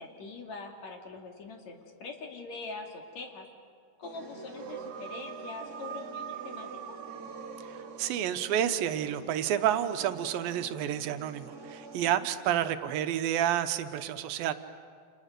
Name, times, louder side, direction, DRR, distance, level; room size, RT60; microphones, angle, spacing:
voice 1, 0.0-3.5 4.0-6.7 12.2-12.6, left 3 dB, 55° left, 2 dB, 3.4 m, -43 dB
sound 1, 4.0-12.1, right 2 dB, 30° right, 2.6 m, -47 dB
sound 2, 4.5-8.6, right 9 dB, 70° right, 2.2 m, -43 dB
voice 2, 8.0-14.5, right 10 dB, 90° right, 9 dB, 2.7 m, -29 dB
30.0 x 28.5 x 6.7 m, 2.1 s
omnidirectional pair, 4.0 m